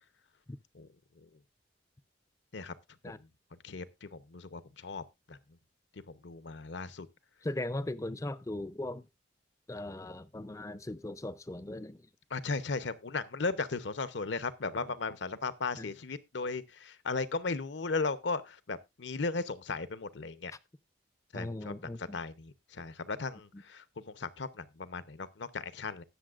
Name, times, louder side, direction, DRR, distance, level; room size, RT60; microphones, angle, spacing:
voice 1, 3.6-5.4 6.1-7.1 12.3-20.5 21.3-21.7 22.0-26.0, left 4 dB, 70° left, 0.8 m, -36 dB
voice 2, 7.4-9.0 9.7-12.1 15.8-15.9 21.3-22.2 23.5-23.6, left 1 dB, 15° left, 0.4 m, -38 dB
19.5 x 6.8 x 2.4 m
head